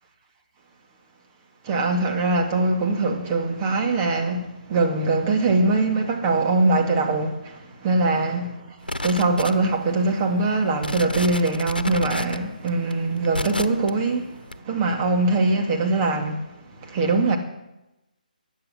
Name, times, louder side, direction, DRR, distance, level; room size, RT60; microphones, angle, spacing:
voice 1, 1.6-8.6 9.0-14.4 14.6-16.4 16.8-17.4, right 3 dB, 25° right, 2.3 m, -22 dB
sound 1, 8.8-9.9 10.4-10.5 10.8-13.9 14.5-14.6, left 1 dB, 90° left, 1.0 m, -30 dB
15.5 x 10.5 x 7.4 m
figure-of-eight pair, 145°, 5 cm